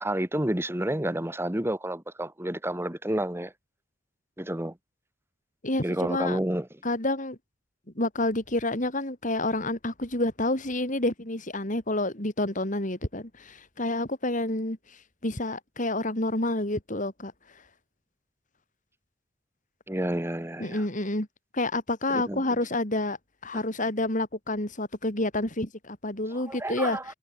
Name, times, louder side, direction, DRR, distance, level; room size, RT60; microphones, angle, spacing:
voice 1, 0.0-3.5 4.4-4.8 5.8-6.7 19.9-20.8 22.1-22.4 23.5-23.6 26.3-27.0, right 1 dB, 10° right, 1.4 m, -30 dB
voice 2, 5.6-6.4 6.8-7.4 8.0-14.8 15.2-17.3 20.6-21.3 21.5-23.2 23.4-27.0, left 2 dB, 40° left, 3.7 m, -29 dB
head